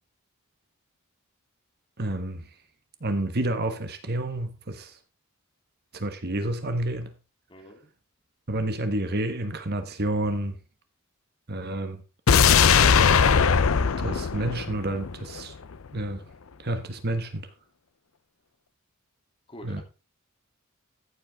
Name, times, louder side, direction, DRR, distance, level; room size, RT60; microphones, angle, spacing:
voice 1, 2.0-2.4 3.0-5.0 5.9-7.1 8.5-10.6 11.5-12.0 14.0-15.5 15.9-16.2 16.6-17.5 19.6-19.8, right 1 dB, 50° right, 1.3 m, -29 dB
voice 2, 7.5-7.8 19.5-19.8, equal, 25° left, 3.1 m, -45 dB
sound 1, 12.3-15.4 15.7-15.8, left 6 dB, 70° left, 0.6 m, -20 dB
14.5 x 8.0 x 3.6 m
head